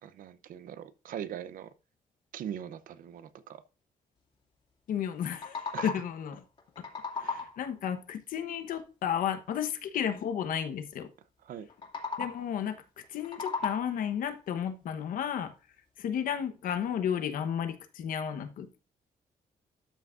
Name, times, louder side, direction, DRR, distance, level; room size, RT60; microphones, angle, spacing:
voice 1, 0.0-1.7 2.3-3.6 5.7-5.9 7.2-7.5 11.4-11.7, right 9 dB, 85° right, 0.7 m, -41 dB
voice 2, 4.9-6.4 7.2-11.1 12.2-12.8 13.1-15.5 16.0-18.8, left 8 dB, 85° left, 1.1 m, -33 dB
sound 1, 5.1-6.2 6.6-7.7 11.7-12.6 13.0-14.1, left 5 dB, 40° left, 2.3 m, -37 dB
12.5 x 6.0 x 2.6 m
cardioid pair, 125°, 14 cm